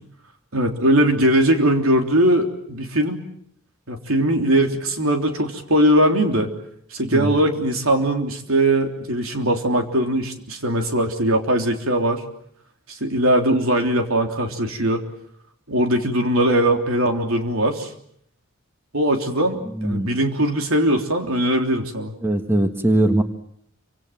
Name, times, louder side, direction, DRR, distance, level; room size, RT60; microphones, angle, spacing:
voice 1, 0.5-3.2 3.9-6.5 6.9-12.2 12.9-15.0 15.7-17.9 18.9-22.1, right 1 dB, 85° right, 4 dB, 3.5 m, -20 dB
voice 2, 19.7-20.1 22.2-23.2, right 1 dB, 10° right, 7 dB, 1.7 m, -20 dB
28.0 x 25.5 x 7.6 m, 0.69 s
head